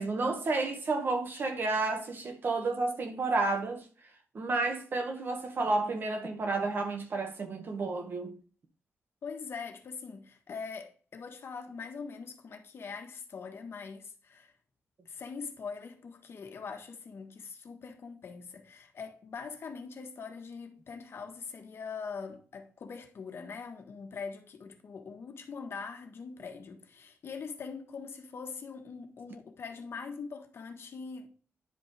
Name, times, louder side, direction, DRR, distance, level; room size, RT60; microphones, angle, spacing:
voice 1, 0.0-3.8 4.3-8.4, right 3 dB, 50° right, 1.7 m, -31 dB
voice 2, 9.2-14.5 15.0-31.3, left 5 dB, 60° left, 1.4 m, -42 dB
10.5 x 5.2 x 3.4 m
wide cardioid pair, 115°, 5 cm